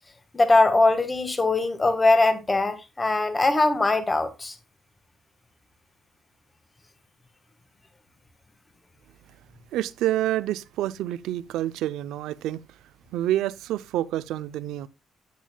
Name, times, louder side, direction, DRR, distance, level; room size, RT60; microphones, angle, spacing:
voice 1, 0.3-4.6, left 2 dB, 25° left, 1.5 m, -21 dB
voice 2, 9.7-12.6 13.1-14.9, right 13 dB, 90° right, 0.5 m, -28 dB
10.0 x 9.1 x 2.2 m
cardioid pair, 90°, 0 cm